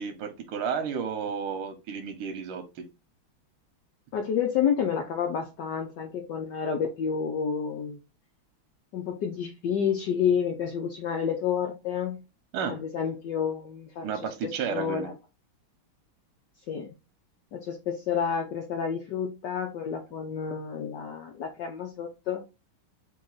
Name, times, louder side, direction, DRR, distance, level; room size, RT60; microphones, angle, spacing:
voice 1, 0.0-2.8 12.5-12.8 14.0-15.1, right 6 dB, 85° right, 8 dB, 1.7 m, -32 dB
voice 2, 4.1-8.0 8.9-12.2 12.7-15.1 16.7-16.9 17.5-22.4, left 7 dB, 65° left, 3 dB, 1.1 m, -30 dB
4.1 x 3.0 x 3.9 m, 0.27 s
omnidirectional pair, 2.4 m